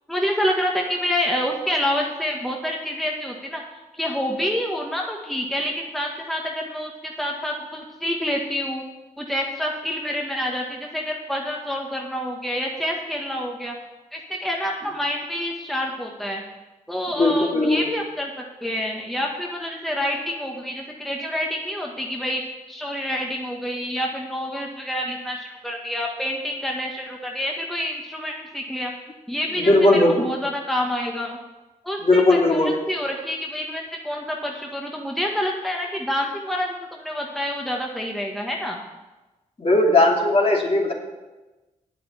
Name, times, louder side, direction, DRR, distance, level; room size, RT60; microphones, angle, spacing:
voice 1, 0.1-3.6 3.9-8.8 9.2-13.8 14.1-16.4 16.9-22.4 22.7-28.9 29.3-31.4 31.8-38.8, left 1 dB, ahead, 0 dB, 1.7 m, -27 dB
voice 2, 17.2-17.8 29.6-30.3 32.0-32.7 39.6-40.9, left 2 dB, 40° left, -1 dB, 2.8 m, -18 dB
8.7 x 7.6 x 7.2 m, 1.1 s
supercardioid pair, 40°, 15 cm